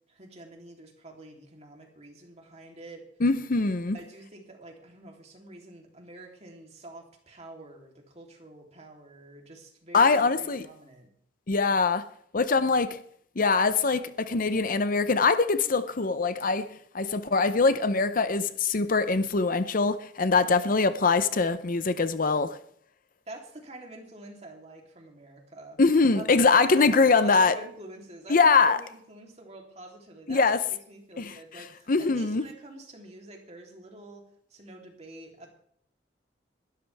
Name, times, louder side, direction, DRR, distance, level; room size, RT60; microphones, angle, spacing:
voice 1, 0.1-3.1 3.9-11.1 23.3-25.8 26.1-34.2 34.5-35.5, right 2 dB, 35° right, 3.3 m, -46 dB
voice 2, 3.2-4.0 9.9-10.7 11.5-12.1 12.3-13.0 13.4-22.6 25.8-27.6 28.3-28.8 30.3-30.6 31.2-31.3 31.9-32.4, left 4 dB, 50° left, 0.7 m, -23 dB
21.5 x 12.5 x 3.5 m
head